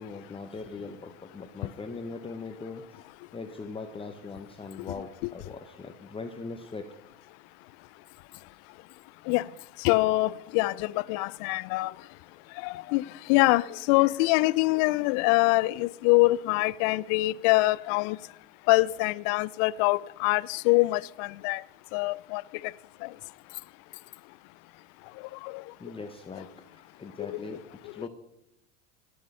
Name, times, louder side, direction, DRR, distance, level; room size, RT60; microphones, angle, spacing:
voice 1, 0.0-6.9 25.8-28.1, left 4 dB, 15° left, 0.9 m, -41 dB
voice 2, 9.8-11.9 12.6-18.2 18.7-21.6 21.9-22.4 23.0-23.1 25.4-25.6 27.2-27.4, left 21 dB, 55° left, 0.5 m, -24 dB
18.0 x 6.6 x 5.5 m
supercardioid pair, 105°, 41 cm